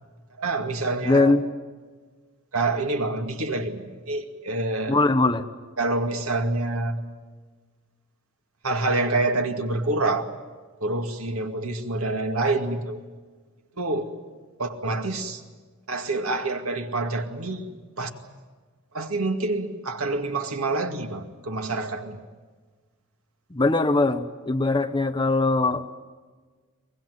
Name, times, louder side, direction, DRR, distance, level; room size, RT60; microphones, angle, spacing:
voice 1, 0.4-1.3 2.5-5.0 5.8-7.0 8.6-10.3 10.8-13.0 13.8-14.1 14.6-15.4 15.9-17.6 18.0-18.1 18.9-22.2, right 2 dB, 80° right, 5 dB, 2.2 m, -27 dB
voice 2, 1.0-1.4 4.9-5.4 23.5-25.9, left 3 dB, 20° left, 8 dB, 0.9 m, -21 dB
23.5 x 20.5 x 9.4 m, 1.4 s
head